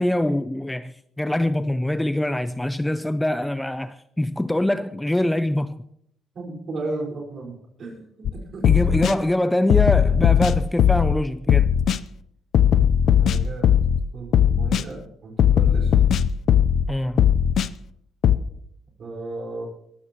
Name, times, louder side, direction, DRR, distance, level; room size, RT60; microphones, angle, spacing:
voice 1, 0.0-5.8 8.6-11.7 16.9-17.3, left 1 dB, 5° left, 0.5 m, -24 dB
voice 2, 6.3-8.7 13.2-13.8 14.1-15.9 19.0-19.7, right 2 dB, 50° right, 4.8 m, -35 dB
sound 1, 8.2-8.3 8.6-9.1 9.7-11.2 11.5-12.0 12.5-14.0 14.3-14.8 15.4-16.9 17.2-17.7 18.2-18.4, left 9 dB, 60° left, 0.6 m, -18 dB
22.0 x 14.5 x 3.0 m
cardioid pair, 120°, 0 cm